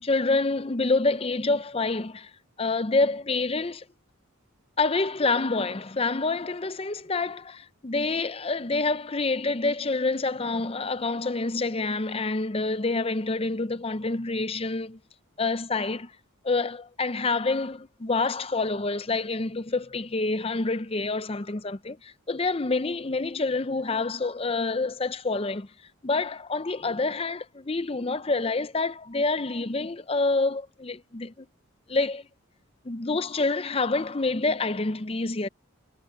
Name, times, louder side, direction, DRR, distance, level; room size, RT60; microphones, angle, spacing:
voice 1, 0.0-2.3 2.6-3.8 4.8-15.0 15.4-16.1 16.4-25.7 26.0-31.5 31.9-32.3 32.8-35.5, left 3 dB, 25° left, 0.6 m, -27 dB
head